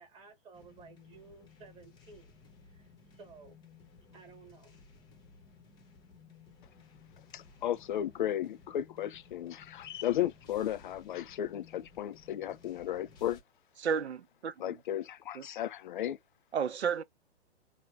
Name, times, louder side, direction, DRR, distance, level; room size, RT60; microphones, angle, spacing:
voice 1, 0.0-2.3 2.6-3.6 4.1-4.8, right 4 dB, 15° right, 1.2 m, -55 dB
sound 1, 0.5-13.4, left 5 dB, 10° left, 0.8 m, -58 dB
voice 2, 7.3-13.4 14.6-16.2, left 11 dB, 50° left, 0.4 m, -34 dB
voice 3, 13.8-14.7 15.3-15.4 16.5-17.0, right 7 dB, 70° right, 0.7 m, -32 dB
3.5 x 2.1 x 3.1 m
figure-of-eight pair, 120°, 34 cm